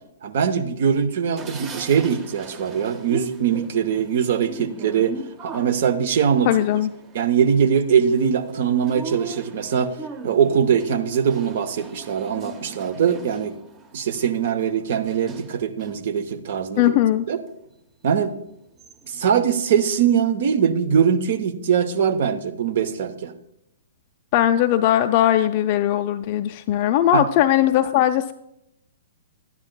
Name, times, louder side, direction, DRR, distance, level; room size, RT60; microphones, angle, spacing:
voice 1, 0.2-5.2 5.4-6.5 7.1-9.9 10.2-13.5 13.9-16.9 17.3-17.4 18.0-18.3 19.1-23.3 27.1-27.2, right 7 dB, 55° right, 10 dB, 0.7 m, -21 dB
This Lift Is Going Up, 1.4-16.1 16.6-17.5 18.1-18.2 18.5-19.3, right 4 dB, 20° right, 0.7 m, -40 dB
voice 2, 6.5-6.9 16.8-17.2 24.3-28.3, left 12 dB, 40° left, 7 dB, 0.3 m, -19 dB
12.0 x 9.7 x 2.2 m, 0.80 s
figure-of-eight pair, 120°, 0 cm